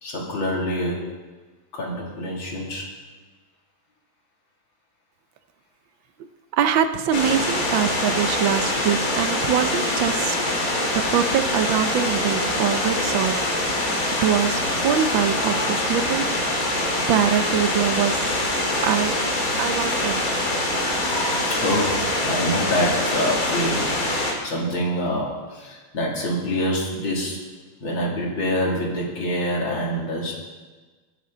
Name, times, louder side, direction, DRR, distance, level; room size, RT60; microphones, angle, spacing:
voice 1, 0.0-1.0 1.7-2.9 21.5-24.0 24.4-27.4 27.8-30.3, equal, 75° left, -3 dB, 3.6 m, -26 dB
voice 2, 6.2-10.4 10.9-16.6 17.1-18.3 18.8-20.3, right 9 dB, 75° right, 10 dB, 1.5 m, -24 dB
sound 1, 7.1-24.3, left 1 dB, 45° left, 2.7 m, -24 dB
21.5 x 10.5 x 3.9 m, 1.3 s
omnidirectional pair, 2.2 m